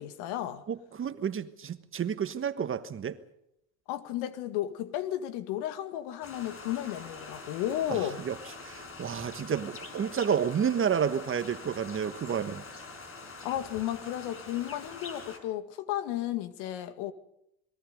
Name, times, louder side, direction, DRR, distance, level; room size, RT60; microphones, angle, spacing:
voice 1, 0.0-0.6 3.9-8.2 13.4-17.1, left 12 dB, 65° left, 2.1 m, -33 dB
voice 2, 0.7-3.2 7.9-8.3 8.6-12.6, right 7 dB, 30° right, 1.3 m, -30 dB
sound 1, 6.2-15.4, left 3 dB, 30° left, 5.2 m, -45 dB
26.5 x 21.5 x 5.3 m
supercardioid pair, 100°, 43 cm